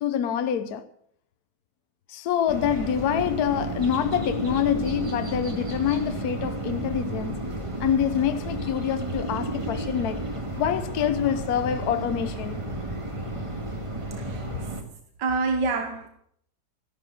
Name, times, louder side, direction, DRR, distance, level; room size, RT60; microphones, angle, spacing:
voice 1, 0.0-0.8 2.1-7.4 7.8-10.3 10.6-12.6, left 9 dB, 65° left, 1.3 m, -26 dB
sound 1, 2.5-14.8, right 1 dB, 20° right, 1.8 m, -32 dB
voice 2, 15.2-16.1, right 4 dB, 80° right, 1.8 m, -26 dB
13.5 x 11.5 x 6.5 m
omnidirectional pair, 1.9 m